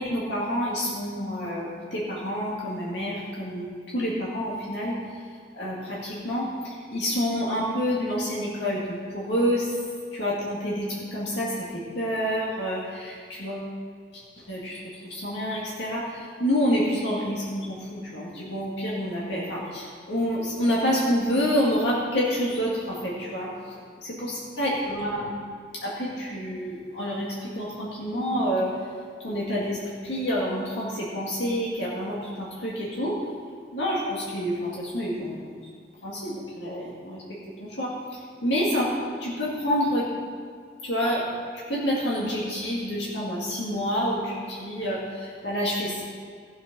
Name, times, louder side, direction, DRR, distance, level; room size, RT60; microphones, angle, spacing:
voice 1, 0.0-5.2 5.5-9.7 10.1-13.7 14.4-23.5 24.2-25.3 25.8-28.7 29.2-29.8 30.0-33.2 33.7-35.5 36.0-37.2 37.6-38.9 39.2-40.1 40.8-41.3 41.5-46.0, equal, 75° left, -6 dB, 2.1 m, -28 dB
15.5 x 6.3 x 6.0 m, 2.1 s
head